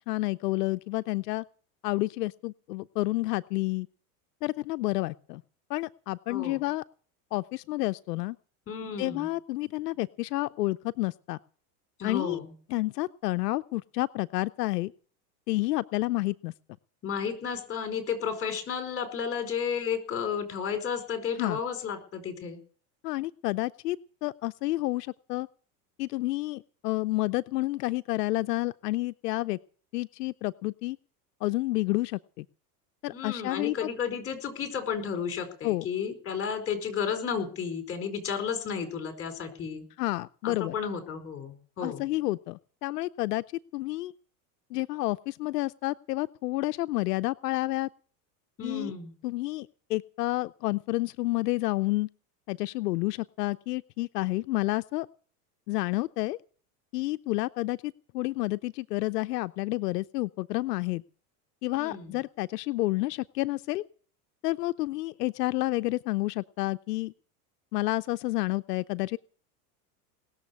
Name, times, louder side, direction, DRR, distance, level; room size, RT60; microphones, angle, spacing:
voice 1, 0.1-1.4 1.8-3.9 4.4-5.4 5.7-6.8 7.3-8.4 9.0-11.4 12.0-12.4 12.7-14.9 15.5-16.5 21.4-21.6 23.0-25.5 26.0-29.6 29.9-31.0 31.4-32.5 33.0-33.9 35.6-35.9 40.0-40.7 41.8-43.4 43.7-44.1 44.7-47.9 48.6-48.9 49.2-52.1 52.5-55.1 55.7-56.4 56.9-61.0 61.6-63.8 64.4-67.1 67.7-69.2, left 19 dB, 90° left, 12 dB, 0.6 m, -30 dB
voice 2, 6.3-6.6 8.7-9.3 12.0-12.5 17.0-22.6 33.1-39.8 40.4-42.1 48.6-49.1 61.7-62.2, left 7 dB, 30° left, 7 dB, 4.7 m, -33 dB
19.5 x 7.2 x 8.3 m, 0.44 s
supercardioid pair, 115°, 47 cm